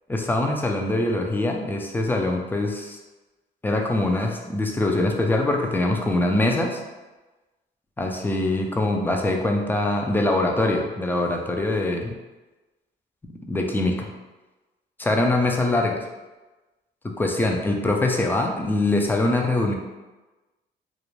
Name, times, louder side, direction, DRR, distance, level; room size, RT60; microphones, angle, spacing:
voice 1, 0.1-3.0 3.6-6.8 8.0-12.2 13.5-14.1 15.0-16.0 17.0-19.7, left 2 dB, 10° left, 1 dB, 0.4 m, -23 dB
2.4 x 2.1 x 3.0 m, 1.1 s
cardioid pair, 90°, 20 cm